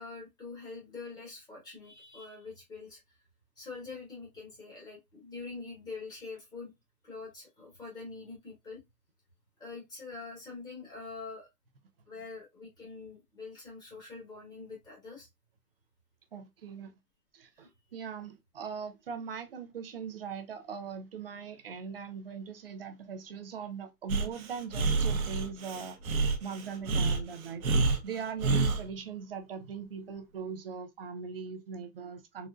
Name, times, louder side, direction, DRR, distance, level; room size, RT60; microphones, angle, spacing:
voice 1, 0.0-3.0 3.6-6.7 7.0-8.8 9.6-11.5 12.0-15.3 17.6-17.7, left 4 dB, 10° left, 1.1 m, -44 dB
voice 2, 16.3-16.9 17.3-27.7 28.0-32.5, right 6 dB, 40° right, 0.4 m, -40 dB
Breathing, 24.1-28.8, right 3 dB, 60° right, 0.8 m, -28 dB
3.8 x 2.1 x 2.4 m
hypercardioid pair, 145°, 48 cm